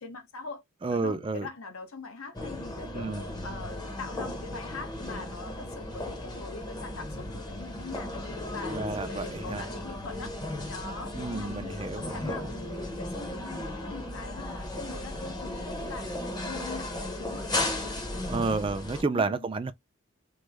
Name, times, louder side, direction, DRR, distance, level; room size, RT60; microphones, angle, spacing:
voice 1, 0.0-0.6 0.9-3.1 3.4-8.3 8.5-10.3 10.7-17.5 19.1-19.5, left 4 dB, 80° left, 0.8 m, -42 dB
voice 2, 0.8-1.5 2.9-3.2 8.7-9.6 11.1-12.5 18.3-19.7, right 3 dB, 25° right, 0.3 m, -31 dB
sound 1, 2.3-19.0, left 1 dB, 20° left, 0.7 m, -36 dB
3.1 x 2.0 x 3.4 m
head